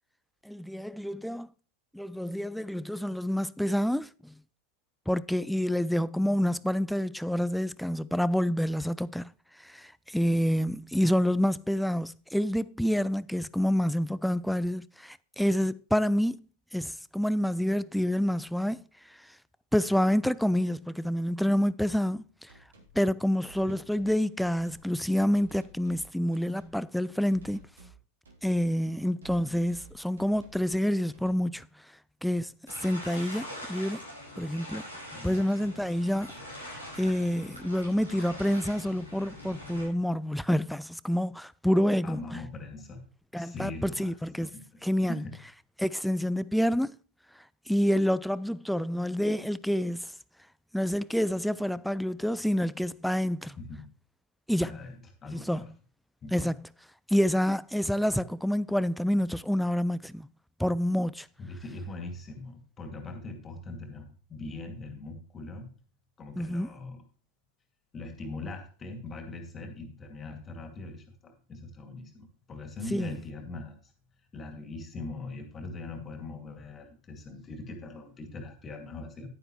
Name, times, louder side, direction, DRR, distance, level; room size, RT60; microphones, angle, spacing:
voice 1, 0.5-1.5 1.9-4.3 5.1-9.3 9.6-16.4 16.7-18.8 19.7-22.5 23.0-27.6 28.4-31.7 32.2-32.5 32.8-34.0 34.4-34.8 35.2-36.3 36.6-42.2 43.3-44.5 44.8-45.2 45.8-46.9 47.7-50.1 50.7-53.6 54.5-54.8 55.3-55.6 56.3-56.6 57.1-60.3 60.6-61.3 66.4-66.7 72.9-73.1, equal, ahead, 0.4 m, -28 dB
sound 1, 22.5-22.9 23.4-24.1 24.4-24.9 25.4-26.1 26.3-26.8 27.3-28.0 28.2-28.7 29.2-30.7 31.1-31.4, right 4 dB, 65° right, 2.8 m, -53 dB
sound 2, 32.7-39.9, left 1 dB, 90° right, 5.3 m, -43 dB
voice 2, 42.0-43.0 43.4-44.2 44.5-44.8 45.1-45.4 53.6-53.9 54.6-55.7 56.2-56.6 61.4-65.7 66.2-67.0 67.9-73.9 74.3-79.3, left 3 dB, 20° left, 2.3 m, -41 dB
10.5 x 9.8 x 3.1 m
figure-of-eight pair, 90°, 0 cm